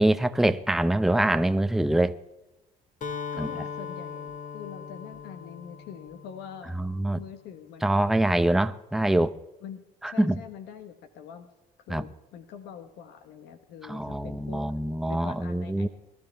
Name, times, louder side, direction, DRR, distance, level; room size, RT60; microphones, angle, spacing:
voice 1, 0.0-2.2 3.4-3.5 6.8-7.2 7.8-9.3 10.0-10.4 11.9-12.0 13.9-15.9, right 1 dB, ahead, 0.6 m, -24 dB
Acoustic guitar, 3.0-6.9, left 6 dB, 50° left, 2.2 m, -39 dB
voice 2, 3.3-6.8 7.1-8.0 9.6-11.5 11.9-14.7 15.1-15.9, left 8 dB, 85° left, 1.3 m, -44 dB
21.5 x 12.5 x 3.4 m
cardioid pair, 110°, 17 cm